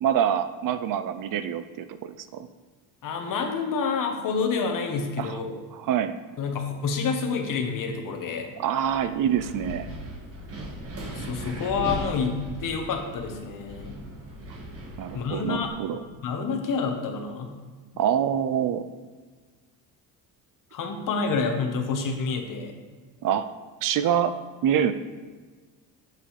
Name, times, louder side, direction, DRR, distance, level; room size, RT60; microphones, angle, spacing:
voice 1, 0.0-2.5 5.2-5.4 5.7-6.2 8.6-9.9 15.0-16.0 18.0-18.9 23.2-23.5 23.8-24.3 24.6-24.9, right 9 dB, 55° right, 11 dB, 0.5 m, -25 dB
voice 2, 3.0-5.6 6.4-8.5 11.2-14.0 15.1-17.6 20.7-22.7, left 5 dB, 55° left, 5 dB, 1.1 m, -28 dB
Wind, 8.8-15.7, right 1 dB, 35° right, 1.6 m, -38 dB
7.7 x 5.8 x 3.2 m, 1.4 s
cardioid pair, 95°, 39 cm